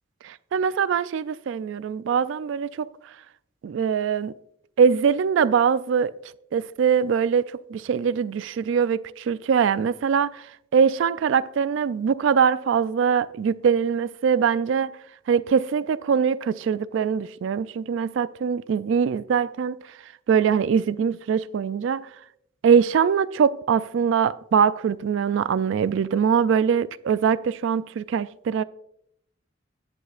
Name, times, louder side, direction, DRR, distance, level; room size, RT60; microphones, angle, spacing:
voice 1, 0.2-2.9 3.6-4.3 4.8-6.1 6.5-7.4 7.7-10.4 10.7-15.0 15.3-19.8 20.3-22.1 22.6-28.6, right 7 dB, 75° right, 0.3 m, -22 dB
19.0 x 7.8 x 2.5 m
head